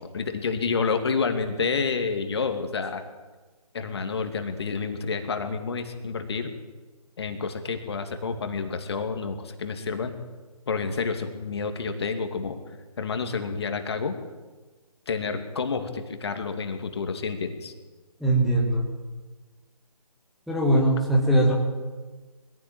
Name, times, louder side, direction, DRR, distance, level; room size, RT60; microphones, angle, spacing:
voice 1, 0.0-3.0 3.7-6.5 7.2-10.2 10.7-12.6 13.0-14.2 15.1-17.7, left 5 dB, 45° left, 7 dB, 2.6 m, -29 dB
voice 2, 18.2-18.9 20.5-21.5, right 1 dB, ahead, -4 dB, 1.6 m, -21 dB
22.0 x 16.0 x 9.1 m, 1.3 s
figure-of-eight pair, 150°, 19 cm